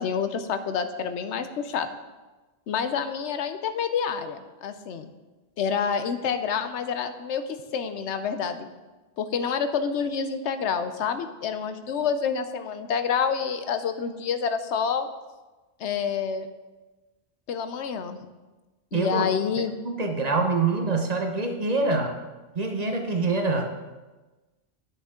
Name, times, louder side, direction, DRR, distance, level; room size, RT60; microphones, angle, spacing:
voice 1, 0.0-1.9 2.7-5.1 5.6-8.7 9.2-15.1 15.8-16.5 17.5-18.2 18.9-19.7, left 6 dB, 90° left, 9 dB, 1.0 m, -28 dB
voice 2, 18.9-19.3 19.8-22.1 22.6-23.7, right 3 dB, 40° right, 4 dB, 0.8 m, -25 dB
10.5 x 6.5 x 3.7 m, 1.2 s
omnidirectional pair, 1.1 m